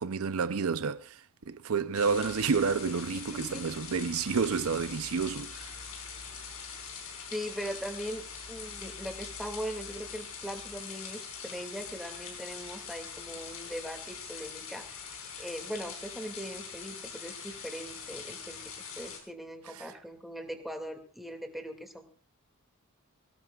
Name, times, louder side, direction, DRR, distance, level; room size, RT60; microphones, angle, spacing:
voice 1, 0.0-5.8 19.7-19.9, right 5 dB, 90° right, 0.6 m, -30 dB
sound 1, 1.9-19.2, left 6 dB, 80° left, 5.5 m, -43 dB
voice 2, 3.1-3.8 7.3-22.1, equal, ahead, 2.3 m, -40 dB
23.5 x 18.5 x 2.4 m
head